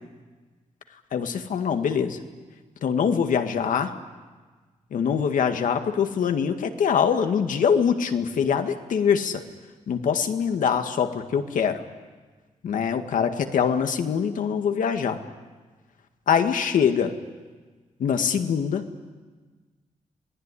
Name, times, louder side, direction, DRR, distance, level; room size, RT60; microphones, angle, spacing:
voice 1, 1.1-2.2 2.8-3.9 4.9-9.4 9.9-11.8 12.6-15.2 16.3-17.2 18.0-18.8, left 7 dB, 80° left, 6 dB, 2.0 m, -23 dB
27.0 x 19.5 x 10.0 m, 1.4 s
wide cardioid pair, 160°, 13 cm